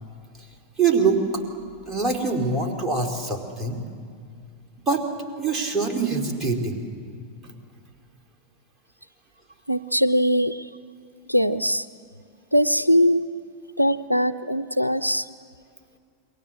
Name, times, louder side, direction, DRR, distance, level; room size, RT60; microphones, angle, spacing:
voice 1, 0.8-1.4 1.9-3.8 4.9-5.0 5.4-6.8, right 4 dB, 15° right, 1 dB, 3.4 m, -24 dB
voice 2, 9.7-10.7 11.3-11.9 12.5-13.2 13.8-15.3, equal, 90° right, 14 dB, 0.6 m, -21 dB
27.5 x 22.5 x 7.6 m, 2.2 s
figure-of-eight pair, 90°, 0 cm